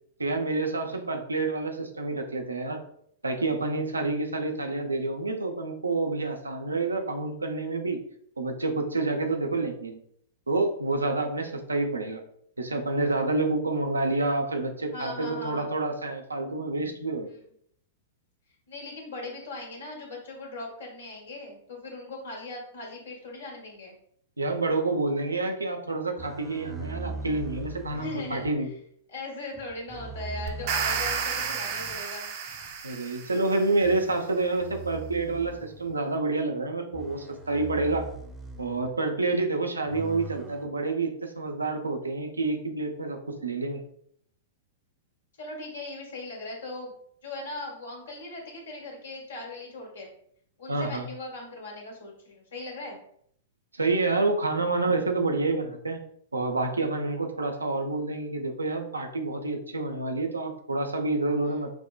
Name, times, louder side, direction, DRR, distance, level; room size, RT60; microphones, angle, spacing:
voice 1, 0.2-2.8 3.2-8.0 8.4-10.0 10.5-12.2 12.6-17.3 24.4-28.7 32.8-38.1 38.6-43.8 50.7-51.1 53.7-56.0 56.3-61.7, right 3 dB, 90° right, 4 dB, 0.6 m, -28 dB
voice 2, 14.9-15.7 17.3-17.4 18.7-23.9 27.9-28.7 29.1-32.3 39.2-39.4 45.4-46.9 47.2-50.1 50.6-53.0 61.4-61.6, left 2 dB, 70° left, -1 dB, 1.5 m, -39 dB
sound 1, 26.2-28.5 29.5-32.0 32.5-32.7 33.8-36.0 36.9-38.9 39.9-40.7, right 3 dB, 10° right, 0.7 m, -41 dB
sound 2, 30.5-33.7, right 6 dB, 50° right, 0.6 m, -31 dB
5.9 x 2.2 x 2.4 m, 0.67 s
figure-of-eight pair, 105°, 0 cm